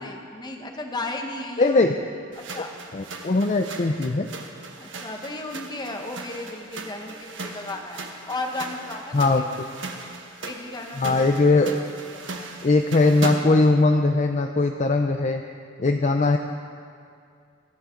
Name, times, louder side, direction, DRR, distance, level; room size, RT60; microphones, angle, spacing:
voice 1, 0.0-1.9 2.3-2.7 4.8-9.5 10.4-11.3 11.7-11.8 12.1-12.2, left 2 dB, 20° left, 3 dB, 1.2 m, -34 dB
voice 2, 1.6-1.9 2.9-4.3 9.1-9.4 11.0-11.7 12.6-15.4 15.8-16.4, left 3 dB, 35° left, 5 dB, 0.5 m, -20 dB
sound 1, 2.3-13.7, right 3 dB, 70° right, 1.4 m, -37 dB
22.5 x 11.0 x 3.8 m, 2.3 s
head